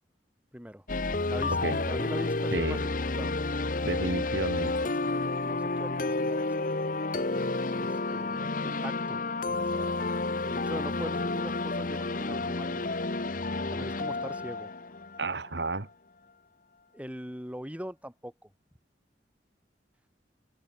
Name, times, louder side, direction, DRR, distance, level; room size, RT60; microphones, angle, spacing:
voice 1, 0.5-0.8 1.3-2.8 3.2-3.4 4.8-6.5 7.7-10.1 10.4-12.9 13.7-14.7 16.9-18.5, equal, 10° right, 4.6 m, -42 dB
sound 1, 0.9-15.7, left 3 dB, 50° left, 1.2 m, -30 dB
voice 2, 1.5-1.8 2.5-2.8 3.8-4.7 15.2-15.9, right 2 dB, 75° right, 1.7 m, -32 dB
head